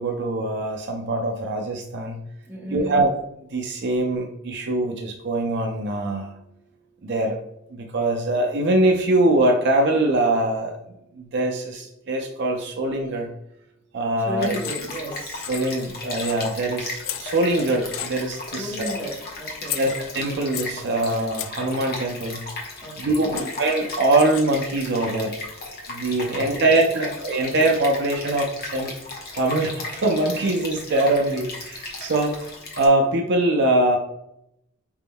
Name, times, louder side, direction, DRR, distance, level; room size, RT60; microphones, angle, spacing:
voice 1, 0.0-2.2 2.7-3.2 3.5-6.3 7.0-7.4 7.7-10.8 11.2-13.3 13.9-14.6 15.5-18.9 19.8-22.4 23.0-25.4 25.9-28.9 29.4-34.0, right 2 dB, 50° right, 2 dB, 0.4 m, -23 dB
voice 2, 2.5-3.0 14.2-15.5 18.4-19.8 22.8-23.5 26.3-27.1, equal, 10° right, -3 dB, 0.9 m, -34 dB
Stream, 14.4-32.9, left 2 dB, 45° left, 0.9 m, -36 dB
sound 1, 14.6-15.0 15.2-15.9 16.2-16.6 17.0-17.6 17.9-18.4 18.8-19.2 19.7-20.8 21.3-21.7 22.9-23.0 23.4-24.6, left 11 dB, 60° left, 0.3 m, -34 dB
5.0 x 3.5 x 2.2 m, 0.80 s
head